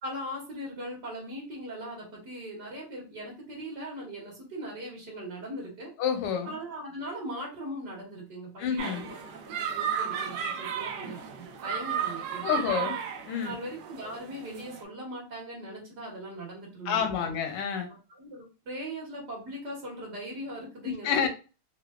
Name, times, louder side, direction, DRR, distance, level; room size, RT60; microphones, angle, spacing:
voice 1, 0.0-5.9 6.4-12.9 13.4-17.3 17.9-21.3, right 1 dB, 50° right, -3 dB, 1.7 m, -40 dB
voice 2, 6.0-6.5 8.6-9.1 12.4-13.0 13.3-13.5 16.9-17.9 20.8-21.3, left 7 dB, 90° left, 5 dB, 1.7 m, -28 dB
sound 1, 8.8-14.8, right 8 dB, 75° right, 1.4 m, -34 dB
4.4 x 2.1 x 2.3 m, 0.32 s
omnidirectional pair, 2.4 m